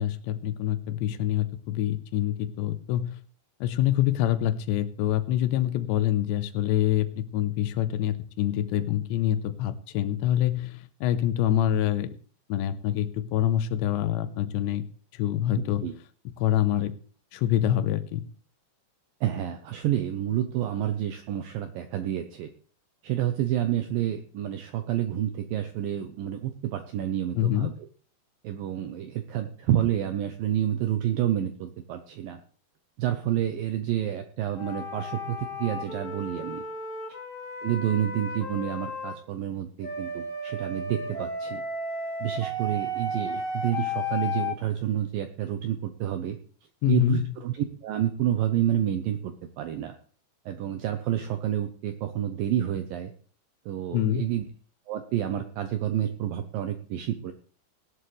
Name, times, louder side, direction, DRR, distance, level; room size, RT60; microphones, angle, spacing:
voice 1, 0.0-3.2 3.6-12.1 12.5-14.8 15.2-15.8 16.4-17.0 17.3-18.2 27.4-27.7 46.8-47.3 53.9-54.2, left 12 dB, 85° left, 12 dB, 3.1 m, -26 dB
voice 2, 15.6-15.9 19.2-22.5 23.0-27.7 28.4-32.4 33.0-36.6 37.6-41.6 42.2-46.4 46.9-49.9 50.5-53.1 53.7-54.5 54.9-57.3, right 11 dB, 80° right, 8 dB, 2.1 m, -29 dB
sound 1, 34.6-39.2 39.8-44.6, left 1 dB, 30° left, 1.6 m, -33 dB
18.0 x 11.0 x 3.3 m, 0.41 s
omnidirectional pair, 5.0 m